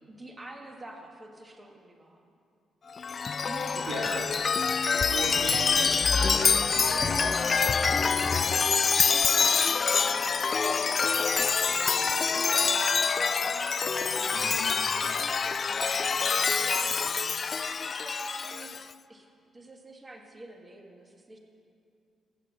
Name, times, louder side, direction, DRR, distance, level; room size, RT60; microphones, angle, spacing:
voice 1, 0.1-2.2 3.4-4.3 10.2-13.7 14.1-16.1 16.5-17.2 17.6-18.8 19.1-19.3 19.5-21.4, right 1 dB, 25° right, 2 dB, 1.8 m, -46 dB
Chime, 3.0-18.8, left 5 dB, 45° left, 0.4 m, -26 dB
voice 2, 3.7-4.2 5.0-8.4 14.3-14.7, right 2 dB, 85° right, -1 dB, 2.0 m, -38 dB
15.0 x 8.4 x 6.7 m, 2.3 s
supercardioid pair, 65°, 0 cm